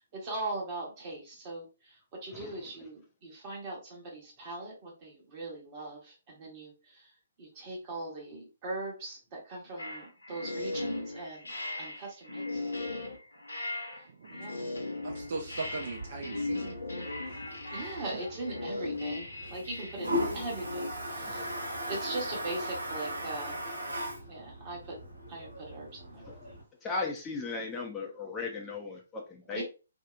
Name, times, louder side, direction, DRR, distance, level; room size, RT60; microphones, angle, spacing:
voice 1, 0.0-7.1 7.4-12.4 12.8-13.0 14.3-14.7 17.7-21.5 21.9-23.6 24.3-25.0 25.3-26.5 29.5-29.6, right 2 dB, 30° right, -2 dB, 1.0 m, -40 dB
sound 1, 9.8-20.9, left 2 dB, 75° left, 0.6 m, -38 dB
voice 2, 15.0-16.8 22.1-22.2 22.5-22.6, right 3 dB, 50° right, 1 dB, 0.5 m, -39 dB
Toilet flush, 15.1-26.6, equal, 75° right, 1.2 m, -39 dB
voice 3, 21.2-21.6 26.2-26.4 26.8-29.6, left 4 dB, 15° left, -1 dB, 0.4 m, -37 dB
2.8 x 2.0 x 2.3 m, 0.32 s
figure-of-eight pair, 130°, 0 cm